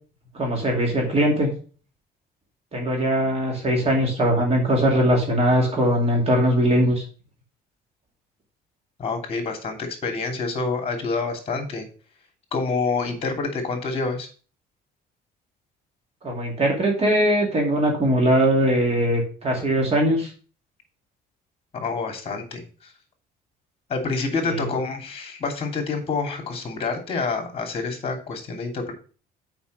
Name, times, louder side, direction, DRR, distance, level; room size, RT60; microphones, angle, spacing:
voice 1, 0.3-1.5 2.7-7.0 16.2-20.3 24.5-24.6, equal, 35° right, 1 dB, 2.6 m, -21 dB
voice 2, 9.0-11.9 12.5-14.3 21.7-22.6 23.9-28.9, left 4 dB, 35° left, 4 dB, 2.9 m, -27 dB
7.0 x 5.2 x 6.6 m, 0.39 s
cardioid pair, 110°, 17 cm